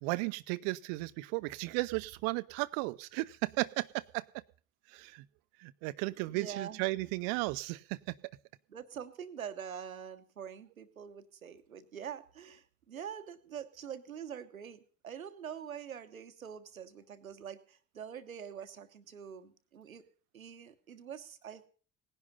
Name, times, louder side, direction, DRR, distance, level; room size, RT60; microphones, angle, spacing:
voice 1, 0.0-4.2 4.9-5.2 5.6-8.0, right 22 dB, 65° right, 14 dB, 0.7 m, -35 dB
voice 2, 6.3-6.9 8.7-20.0 20.3-21.7, right 8 dB, 90° right, 10 dB, 1.0 m, -45 dB
18.5 x 11.0 x 5.5 m, 0.42 s
figure-of-eight pair, 55°, 41 cm